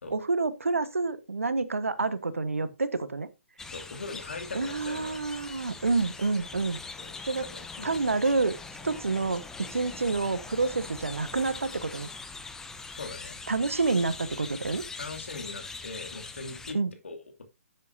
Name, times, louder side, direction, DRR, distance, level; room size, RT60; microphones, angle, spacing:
voice 1, 0.1-3.3 4.5-6.8 7.3-7.4 7.8-8.6 8.8-12.1 13.5-14.8 16.7-16.9, right 3 dB, 75° right, 1.2 m, -28 dB
sound 1, 3.6-16.7, left 4 dB, 5° left, 0.8 m, -42 dB
voice 2, 3.7-5.2 7.0-8.0 12.9-13.4 14.9-16.8 17.0-17.4, left 4 dB, 65° left, 2.6 m, -41 dB
10.5 x 7.7 x 2.7 m
figure-of-eight pair, 130°, 7 cm